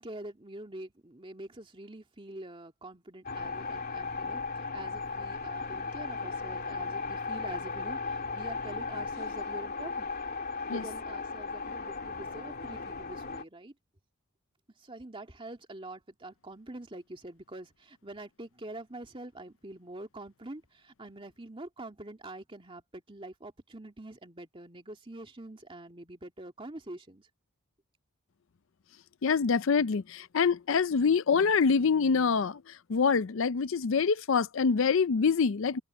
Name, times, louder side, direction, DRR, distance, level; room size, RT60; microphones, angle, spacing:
voice 1, 0.0-10.1 10.7-13.7 14.8-27.3, right 1 dB, 25° right, 2.3 m, -45 dB
sound 1, 3.3-13.4, left 4 dB, 45° left, 2.9 m, -36 dB
voice 2, 29.2-32.6 32.9-35.8, left 5 dB, 60° left, 0.5 m, -25 dB
open air
head